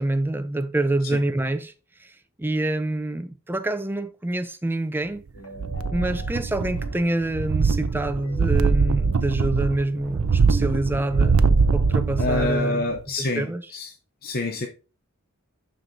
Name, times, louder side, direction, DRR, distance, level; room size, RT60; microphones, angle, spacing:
voice 1, 0.0-1.7 2.0-2.1 2.4-5.2 5.9-11.4 11.7-13.6, right 2 dB, 10° right, 0.5 m, -26 dB
sound 1, 5.3-12.9, equal, 85° left, 2.0 m, -44 dB
sound 2, 5.6-7.0 7.3-12.6 13.0-13.1, right 4 dB, 85° right, 0.5 m, -22 dB
voice 2, 12.2-13.9 14.2-14.7, left 2 dB, 45° left, 0.7 m, -27 dB
11.5 x 4.5 x 2.7 m
head